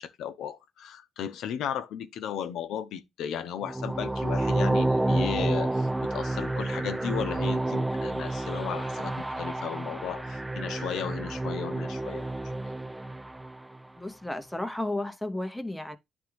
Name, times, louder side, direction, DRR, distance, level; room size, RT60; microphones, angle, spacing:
voice 1, 0.0-12.3, left 9 dB, 80° left, 0.6 m, -35 dB
sound 1, 3.6-13.8, right 2 dB, 10° right, 0.3 m, -29 dB
voice 2, 14.0-16.0, left 1 dB, 5° left, 0.8 m, -33 dB
10.5 x 3.5 x 3.3 m
cardioid pair, 90°, 0 cm